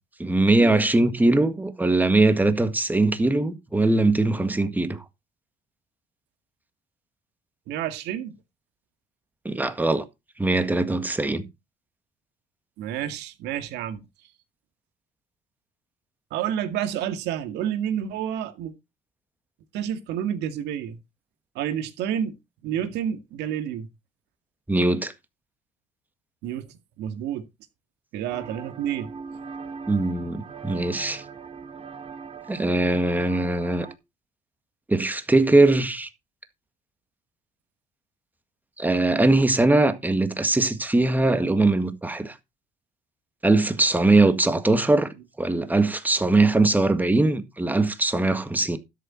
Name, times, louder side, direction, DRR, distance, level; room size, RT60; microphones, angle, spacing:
voice 1, 0.2-5.0 9.5-10.1 10.4-11.5 24.7-25.1 29.9-31.2 32.5-33.9 34.9-36.1 38.8-42.3 43.4-45.1 45.4-48.8, right 2 dB, 10° right, 1.8 m, -21 dB
voice 2, 7.7-8.3 12.8-14.0 16.3-18.7 19.7-21.0 21.5-22.4 22.6-23.9 26.4-27.5 28.1-29.1, right 10 dB, 85° right, 2.1 m, -29 dB
sound 1, 28.3-34.0, right 5 dB, 35° right, 1.7 m, -40 dB
13.0 x 6.9 x 4.4 m
cardioid pair, 110°, 17 cm